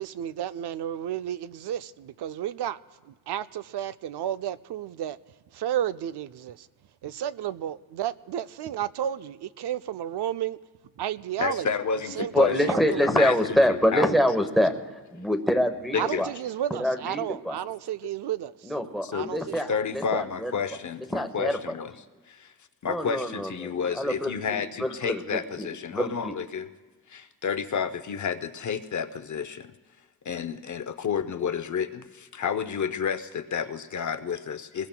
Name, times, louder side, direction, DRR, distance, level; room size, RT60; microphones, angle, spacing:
voice 1, 0.0-2.8 3.0-5.2 5.5-6.7 7.0-10.6 11.0-11.7 12.2-13.1 16.0-18.7 19.1-19.6, right 11 dB, 80° right, 0.5 m, -32 dB
voice 2, 11.4-12.6 13.0-14.1 15.9-16.3 19.0-21.9 22.3-22.5 22.8-26.7 27.1-29.7 30.2-34.9, left 6 dB, 50° left, 0.6 m, -30 dB
voice 3, 12.3-14.7 15.1-16.3 16.8-17.6 18.6-20.5 21.1-21.7 22.8-26.3, equal, ahead, 0.9 m, -26 dB
25.5 x 21.0 x 2.2 m
wide cardioid pair, 145°, 39 cm